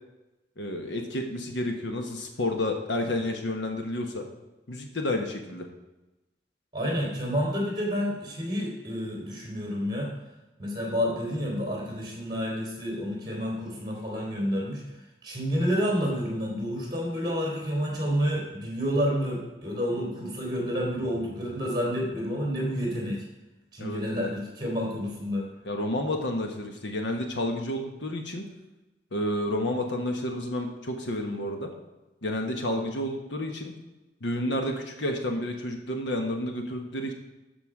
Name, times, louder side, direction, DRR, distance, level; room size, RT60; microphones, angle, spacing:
voice 1, 0.6-4.2 4.7-5.7 23.8-24.0 25.6-28.5 29.1-31.7 32.2-33.7 34.2-37.1, left 1 dB, 75° left, 4 dB, 1.3 m, -30 dB
voice 2, 6.7-10.1 10.6-14.8 15.2-23.3 23.7-25.5, equal, 20° right, -3 dB, 3.3 m, -29 dB
13.0 x 6.0 x 4.9 m, 1.0 s
head